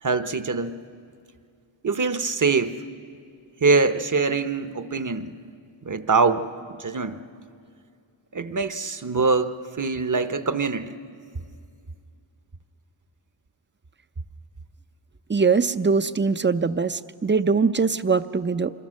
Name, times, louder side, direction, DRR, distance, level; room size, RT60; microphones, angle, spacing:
voice 1, 0.0-0.8 1.8-2.8 3.6-5.3 5.8-7.2 8.3-11.0, right 4 dB, 40° right, 11 dB, 0.9 m, -24 dB
voice 2, 15.3-18.7, right 5 dB, 25° right, 12 dB, 0.6 m, -22 dB
25.5 x 21.5 x 6.4 m, 2.3 s
wide cardioid pair, 55°, 47 cm